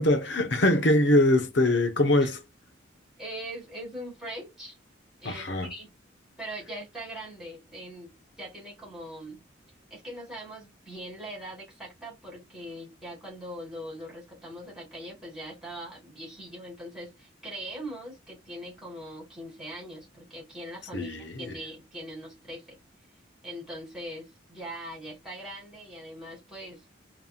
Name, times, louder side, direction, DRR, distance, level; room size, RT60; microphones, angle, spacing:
voice 1, 0.0-2.4 5.2-5.7 20.9-21.5, left 1 dB, 65° left, 0.9 m, -23 dB
voice 2, 3.2-4.8 5.2-5.9 6.4-8.1 8.4-9.4 9.9-22.8 23.4-26.8, right 1 dB, 5° right, 3.0 m, -41 dB
5.4 x 3.0 x 2.4 m
head